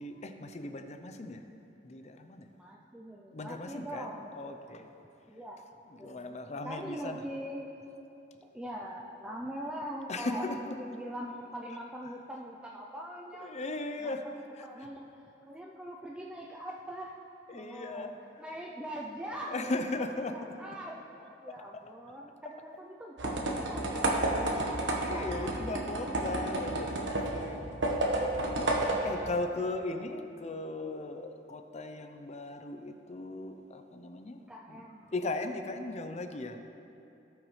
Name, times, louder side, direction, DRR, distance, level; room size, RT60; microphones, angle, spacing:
voice 1, 0.0-1.4 1.8-2.5 3.3-4.9 5.9-7.2 10.1-10.8 13.4-14.3 14.5-14.9 17.5-18.6 19.4-20.6 21.5-21.9 22.4-22.6 24.2-27.8 28.6-34.4 34.7-36.6, left 2 dB, 40° left, 7 dB, 0.6 m, -38 dB
voice 2, 2.6-4.3 5.3-5.7 6.0-6.4 6.6-7.7 8.5-13.5 14.0-17.1 17.5-18.1 18.4-19.7 20.3-24.5 24.8-26.1 34.5-35.1, equal, 5° right, -3 dB, 0.5 m, -42 dB
sound 1, 23.2-29.4, right 1 dB, 90° right, 1.1 m, -31 dB
17.5 x 6.2 x 3.2 m, 2.8 s
head